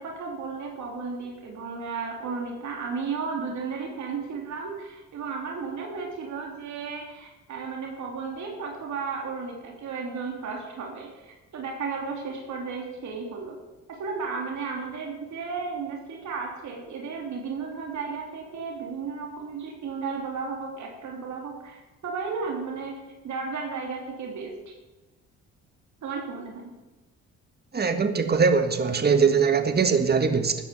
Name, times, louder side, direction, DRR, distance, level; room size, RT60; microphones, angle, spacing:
voice 1, 0.0-13.6 13.9-22.9 23.2-24.5 26.0-26.7, right 5 dB, 70° right, 0 dB, 3.2 m, -34 dB
voice 2, 27.7-30.6, right 5 dB, 35° right, 8 dB, 1.6 m, -21 dB
13.5 x 9.5 x 7.1 m, 1.1 s
cardioid pair, 90°, 30 cm